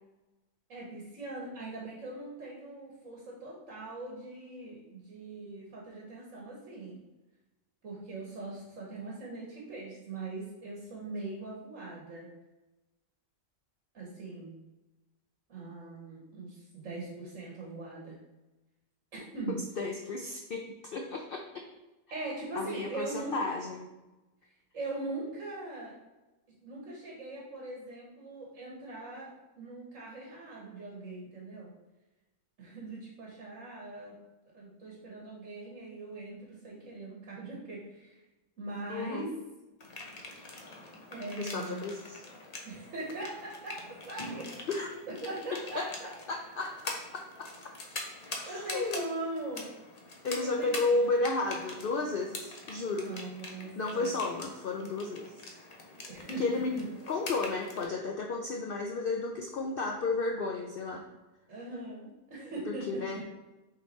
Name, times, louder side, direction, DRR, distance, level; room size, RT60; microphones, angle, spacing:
voice 1, 0.7-7.0 7.8-12.3 13.9-14.5 15.5-18.2 19.1-19.6 22.1-23.5 24.7-25.9 26.6-31.7 32.6-34.1 34.5-38.2 38.6-39.4 41.1-41.9 42.6-44.5 45.2-46.1 48.4-49.7 50.4-51.0 52.9-54.1 56.1-56.8 61.5-63.1, right 2 dB, 55° right, -4 dB, 1.6 m, -41 dB
voice 2, 19.8-21.6 22.5-23.9 38.9-39.3 41.4-42.2 44.7-44.9 45.7-45.9 46.3-47.5 48.4-49.1 50.2-53.1 53.8-55.3 56.4-56.7 57.1-61.0 62.7-63.3, left 3 dB, 75° left, 2 dB, 0.5 m, -33 dB
sound 1, 39.8-57.8, left 2 dB, 35° left, 0.6 m, -44 dB
6.0 x 3.8 x 4.1 m, 1.1 s
omnidirectional pair, 1.6 m